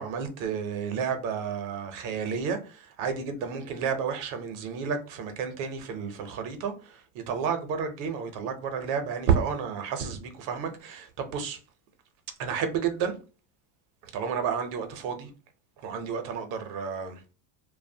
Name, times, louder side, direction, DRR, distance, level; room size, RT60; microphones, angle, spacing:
voice 1, 0.0-11.6 12.4-13.1 14.1-15.3 15.8-17.2, right 6 dB, 45° right, 0.6 m, -31 dB
2.6 x 2.1 x 2.6 m
supercardioid pair, 150°, 47 cm